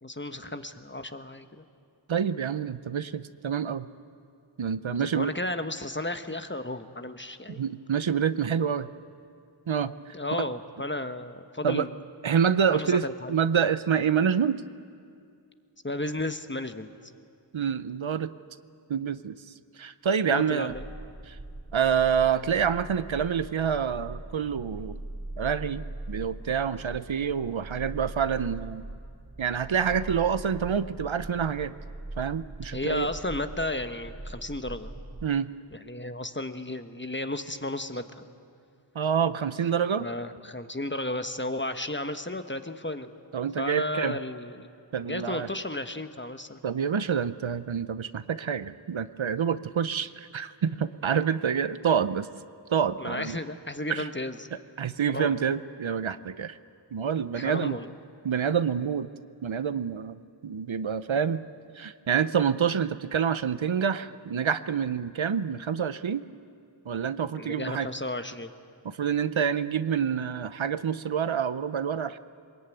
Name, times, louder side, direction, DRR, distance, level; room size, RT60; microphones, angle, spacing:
voice 1, 0.0-1.6 5.0-7.6 10.1-11.9 12.7-13.3 15.8-16.9 20.2-20.8 32.7-34.9 35.7-38.3 40.0-43.1 43.6-44.7 45.1-46.6 53.0-54.5 55.1-55.3 57.3-57.9 67.3-68.5, left 2 dB, 25° left, 9 dB, 1.2 m, -33 dB
voice 2, 2.1-3.9 4.6-5.3 7.5-8.9 9.7-10.1 11.6-11.9 12.2-14.6 17.5-18.3 18.9-19.4 19.8-20.7 21.3-21.4 21.7-25.0 25.4-28.8 29.4-31.7 32.2-33.1 35.2-35.5 38.9-40.1 43.3-44.2 44.9-45.5 46.6-52.3 52.7-53.4 53.9-54.1 54.8-56.6 56.9-57.8 58.2-59.1 59.4-61.4 61.8-66.2 66.9-67.9 68.8-72.2, right 7 dB, 80° right, 14 dB, 0.7 m, -27 dB
sound 1, 20.7-35.3, right 1 dB, 25° right, 0.9 m, -41 dB
23.0 x 20.5 x 9.2 m, 2.3 s
wide cardioid pair, 45°, 46 cm